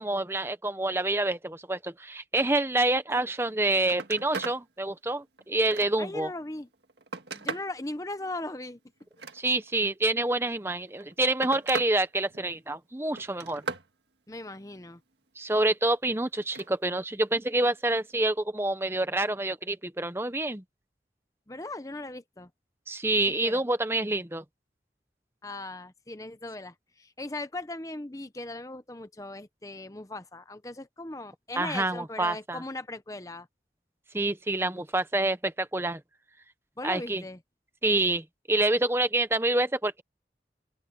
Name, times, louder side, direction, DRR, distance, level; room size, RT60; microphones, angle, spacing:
voice 1, 0.0-6.3 9.3-13.6 15.4-20.6 22.9-24.4 31.6-32.6 34.1-36.0 36.8-37.2 37.8-40.0, right 2 dB, 15° right, 0.8 m, -27 dB
Telephone, 3.4-3.5 3.8-4.6 5.1-6.2 6.7-7.8 9.0-9.8 10.8-11.9 12.3-12.8 13.2-13.9 16.4-16.7 18.1-18.2, right 4 dB, 80° right, 1.7 m, -38 dB
voice 2, 6.0-6.7 7.3-8.8 14.3-15.0 21.5-22.5 23.4-23.6 25.4-33.5 36.8-37.4, left 2 dB, 20° left, 0.8 m, -38 dB
open air
head